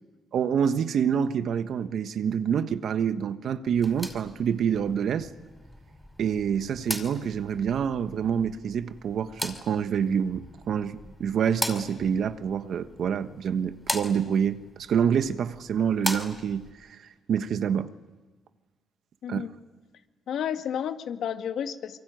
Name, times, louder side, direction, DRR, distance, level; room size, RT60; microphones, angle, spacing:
voice 1, 0.3-5.3 6.2-17.0 17.3-17.9 19.3-19.4, right 7 dB, 65° right, 1.3 m, -27 dB
sound 1, 3.7-16.7, equal, 5° left, 5.1 m, -39 dB
voice 2, 19.2-19.5 20.3-22.0, left 8 dB, 70° left, 1.9 m, -31 dB
26.0 x 23.5 x 9.4 m
cardioid pair, 90°, 0 cm